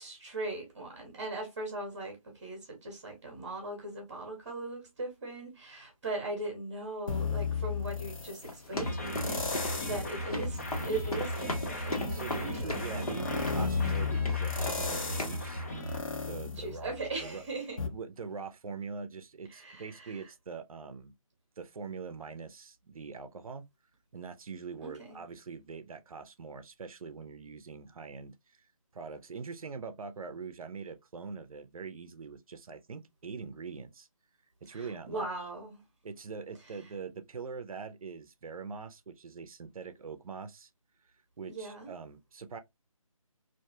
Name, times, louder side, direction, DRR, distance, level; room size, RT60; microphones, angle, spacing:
voice 1, 0.0-10.6 10.9-12.8 16.6-17.8 19.5-20.2 24.8-25.2 34.7-35.8 41.5-41.9, right 2 dB, 25° right, 0.8 m, -39 dB
sound 1, 7.1-8.5 9.1-10.2 10.6-17.3 17.8-17.9, left 5 dB, 65° left, 0.8 m, -35 dB
sound 2, 8.4-14.0 14.3-14.9 15.2-15.5, left 1 dB, 85° left, 1.1 m, -37 dB
sound 3, 8.7-16.0, equal, 25° left, 0.4 m, -36 dB
voice 2, 12.1-15.6 16.3-16.9 17.2-17.4 17.9-21.1 21.6-23.6 24.1-28.7 28.9-34.1 34.6-35.3 36.0-40.7 41.0-42.6, right 5 dB, 75° right, 0.5 m, -43 dB
2.5 x 2.3 x 2.6 m
figure-of-eight pair, 160°, 18 cm